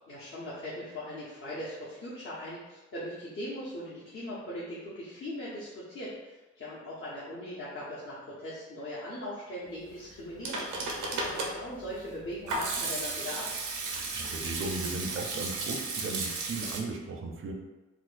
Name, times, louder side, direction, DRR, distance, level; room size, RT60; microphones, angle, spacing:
voice 1, 0.1-13.5, left 1 dB, 45° left, -9 dB, 0.7 m, -40 dB
Hands / Sink (filling or washing), 10.1-16.8, right 3 dB, 90° right, 0.6 m, -34 dB
voice 2, 14.1-17.5, right 3 dB, 45° right, 2 dB, 0.5 m, -36 dB
4.1 x 2.1 x 2.5 m, 1.1 s
wide cardioid pair, 140°, 29 cm